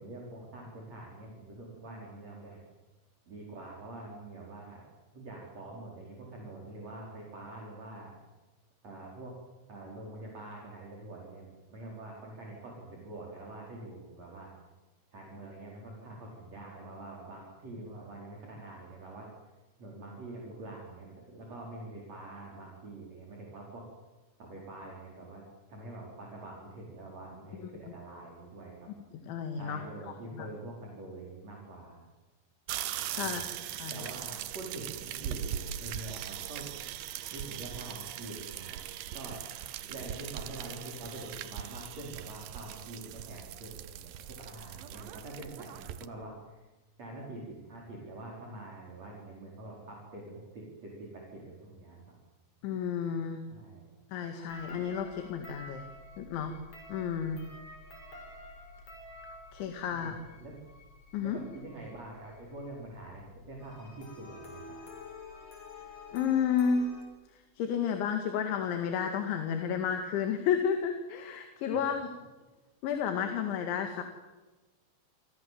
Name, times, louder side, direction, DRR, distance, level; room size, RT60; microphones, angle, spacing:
voice 1, 0.0-2.6 3.3-8.1 8.8-9.4 9.7-14.5 15.1-19.3 19.8-23.8 24.4-28.9 29.6-32.1 33.2-33.5 33.9-36.8 37.3-38.8 39.1-39.4 39.8-46.6 47.0-52.2 53.5-53.9 59.9-60.5 61.2-64.8 71.7-72.0, right 2 dB, 35° right, -2 dB, 5.5 m, -45 dB
voice 2, 29.2-30.5 33.1-33.4 33.8-34.1 52.6-53.4 54.1-55.8 56.2-56.6 56.9-57.4 59.5-60.2 61.1-61.4 66.1-66.9 67.3-72.1 72.8-74.0, left 7 dB, 75° left, 5 dB, 4.3 m, -31 dB
sound 1, 32.7-46.1, right 11 dB, 75° right, 2.1 m, -40 dB
sound 2, 54.5-67.0, left 2 dB, 35° left, 6.4 m, -50 dB
29.5 x 26.0 x 7.8 m, 1.2 s
omnidirectional pair, 5.5 m